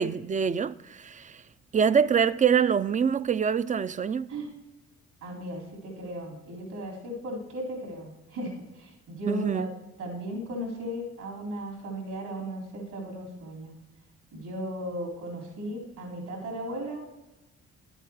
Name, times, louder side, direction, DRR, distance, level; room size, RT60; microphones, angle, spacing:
voice 1, 0.0-1.4 1.7-4.3 9.3-9.7, right 7 dB, 25° right, 0.4 m, -25 dB
voice 2, 5.2-9.7 10.0-13.7 14.3-17.0, equal, 70° right, 4.0 m, -36 dB
11.5 x 8.1 x 4.7 m
cardioid pair, 90°, 30 cm